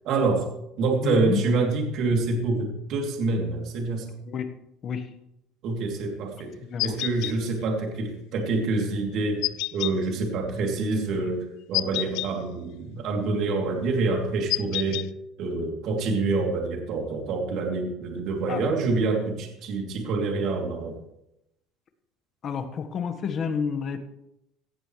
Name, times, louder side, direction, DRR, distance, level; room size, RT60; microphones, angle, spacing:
voice 1, 0.0-0.5 0.8-4.1 5.6-6.5 6.8-15.0 15.4-21.0, right 3 dB, 55° right, 1 dB, 3.1 m, -26 dB
voice 2, 1.0-1.4 4.3-4.5 4.8-5.1 6.7-7.0 18.5-18.7 22.4-24.0, left 6 dB, 40° left, 8 dB, 1.5 m, -29 dB
sound 1, 6.8-7.3 9.4-9.9 11.7-12.3 14.5-15.1, left 20 dB, 70° left, 0.4 m, -28 dB
17.0 x 14.5 x 3.3 m, 0.85 s
cardioid pair, 130°, 0 cm